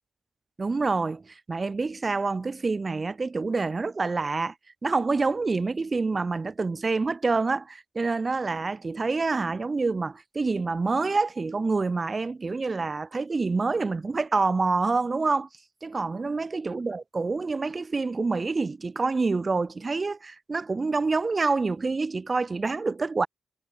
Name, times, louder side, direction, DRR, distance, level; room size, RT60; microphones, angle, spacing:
voice 1, 0.6-4.5 4.8-15.5 15.8-23.3, right 3 dB, 35° right, 4.5 m, -27 dB
cardioid pair, 70°, 0 cm